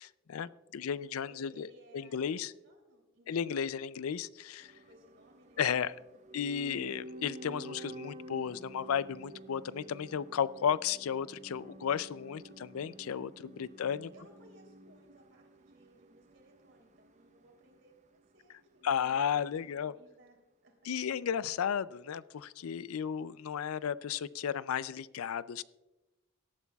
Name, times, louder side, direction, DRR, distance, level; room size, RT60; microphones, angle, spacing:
voice 1, 0.0-1.7 1.9-2.5 3.3-4.7 5.6-5.9 6.3-14.1 18.8-19.9 20.9-25.6, left 8 dB, 85° left, 17 dB, 0.4 m, -34 dB
voice 2, 0.8-4.1 4.8-5.6 12.2-12.7 13.8-21.1, right 1 dB, 60° right, 2 dB, 3.2 m, -62 dB
sound 1, 4.6-18.7 18.9-19.0, right 1 dB, 35° right, 0.6 m, -51 dB
18.0 x 12.5 x 2.3 m, 1.0 s
head